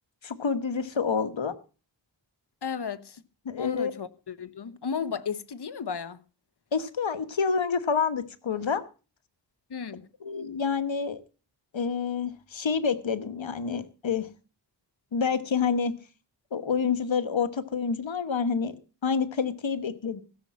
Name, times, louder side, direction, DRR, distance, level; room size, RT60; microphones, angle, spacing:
voice 1, 0.2-1.5 3.4-3.9 6.7-8.8 10.2-11.2 11.7-14.3 15.1-15.9 16.5-18.7 19.0-20.2, left 6 dB, 85° left, 1.3 m, -28 dB
voice 2, 2.6-3.2 3.6-6.2 9.7-10.1, left 6 dB, 60° left, 1.0 m, -34 dB
16.0 x 7.0 x 7.4 m
wide cardioid pair, 65°, 45 cm